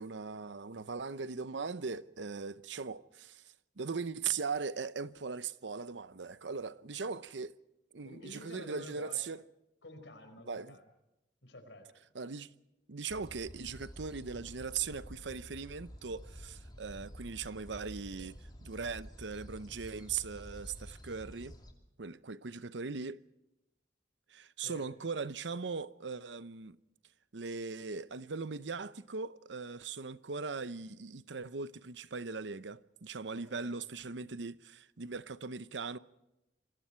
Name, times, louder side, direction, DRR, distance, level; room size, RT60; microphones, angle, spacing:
voice 1, 0.0-7.5 7.9-9.4 10.5-10.8 12.1-12.5 12.9-21.6 22.0-23.2 24.3-26.8 27.3-36.0, right 5 dB, 90° right, 0.8 m, -39 dB
voice 2, 8.0-9.3 9.8-10.9 11.4-11.9 24.6-24.9 33.3-33.7, left 1 dB, 90° left, 4.9 m, -50 dB
sound 1, 13.1-21.7, equal, 25° left, 2.7 m, -50 dB
27.5 x 22.0 x 4.5 m
head